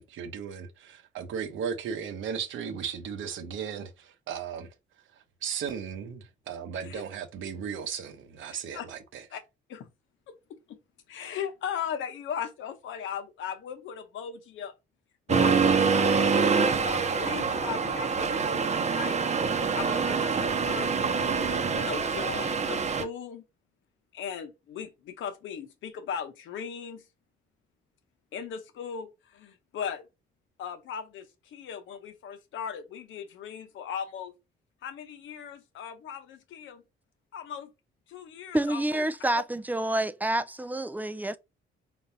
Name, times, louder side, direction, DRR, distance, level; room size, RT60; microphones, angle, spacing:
voice 1, 0.0-4.7 5.4-9.2, right 7 dB, 80° right, 1.0 m, -36 dB
voice 2, 8.5-8.9 9.3-9.4 9.7-9.9 10.3-10.8 11.1-14.7 15.3-16.3 16.8-19.2 19.8-23.4 24.1-27.0 28.3-30.1 30.6-34.3 34.8-36.8 37.3-37.7 38.1-39.1, left 7 dB, 75° left, 1.0 m, -38 dB
Accelerating revving vroom, 15.3-23.0, right 5 dB, 35° right, 0.8 m, -25 dB
voice 3, 38.5-41.4, right 1 dB, 10° right, 0.4 m, -28 dB
4.3 x 3.9 x 2.8 m
cardioid pair, 90°, 20 cm